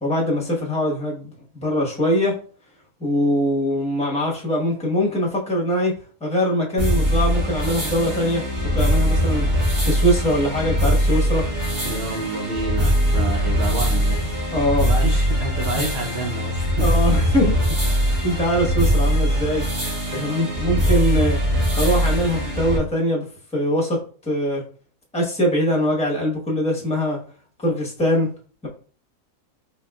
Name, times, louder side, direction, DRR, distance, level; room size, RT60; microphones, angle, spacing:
voice 1, 0.0-2.3 3.0-5.9 6.2-8.4 8.7-11.5 13.1-13.3 14.5-14.9 15.6-15.8 16.8-17.5 17.8-18.0 18.2-19.6 20.1-21.4 21.8-23.3 23.5-24.6 25.1-27.2 27.6-28.3, equal, 5° left, -2 dB, 0.9 m, -22 dB
sound 1, 6.8-22.8, equal, 40° right, 1.4 m, -21 dB
voice 2, 11.8-14.2 14.8-16.9 20.2-20.8, right 3 dB, 60° right, 2 dB, 0.7 m, -29 dB
4.0 x 3.5 x 2.3 m, 0.41 s
omnidirectional pair, 1.6 m